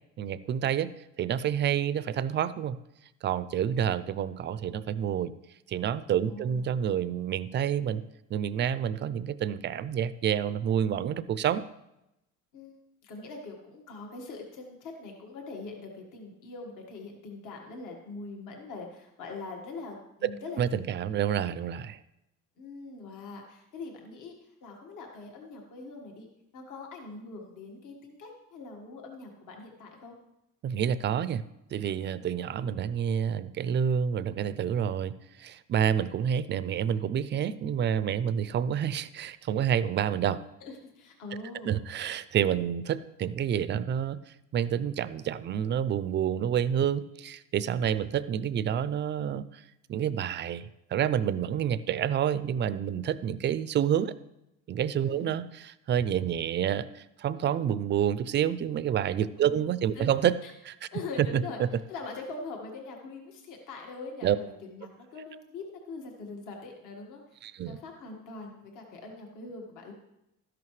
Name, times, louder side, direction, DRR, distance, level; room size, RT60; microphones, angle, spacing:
voice 1, 0.2-0.9 1.2-2.8 3.2-5.3 5.7-8.0 8.3-11.6 20.2-20.3 20.6-22.0 30.6-31.4 31.7-35.1 35.4-40.4 41.6-44.2 44.5-49.6 49.9-54.1 54.7-60.3 60.7-60.8 61.2-61.4 64.2-64.4 67.4-67.8, right 9 dB, 35° right, 15 dB, 0.4 m, -28 dB
voice 2, 6.2-6.7 12.5-12.8 13.0-20.6 22.6-26.3 26.5-30.2 32.2-32.3 38.4-38.5 40.6-41.8 55.1-55.3 59.4-60.1 60.4-60.5 60.9-61.6 61.9-69.9, left 3 dB, 65° left, 1 dB, 1.7 m, -43 dB
13.0 x 11.0 x 3.2 m, 0.88 s
cardioid pair, 145°, 34 cm